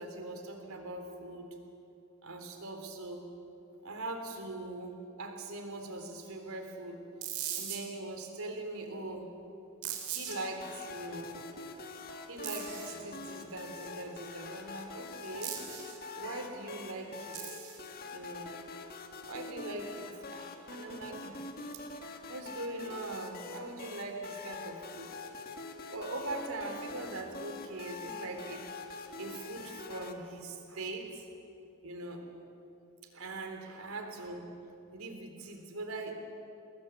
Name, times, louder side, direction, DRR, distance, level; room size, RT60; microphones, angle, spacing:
voice 1, 0.0-1.5 2.2-3.3 3.8-7.1 7.5-9.3 10.1-11.4 12.3-15.6 16.1-17.6 18.0-18.5 19.3-21.5 21.7-21.9 22.3-25.1 25.9-28.7 29.2-31.3 31.8-32.3 33.1-34.5 34.9-36.1, right 2 dB, 70° right, 5 dB, 3.7 m, -41 dB
sound 1, 7.2-7.8 9.8-10.4 12.4-12.9 15.4-16.0 17.3-17.8, right 10 dB, 90° right, 3.9 m, -38 dB
sound 2, 10.3-30.1, left 3 dB, 40° left, 1.8 m, -45 dB
28.5 x 21.0 x 8.4 m, 2.8 s
head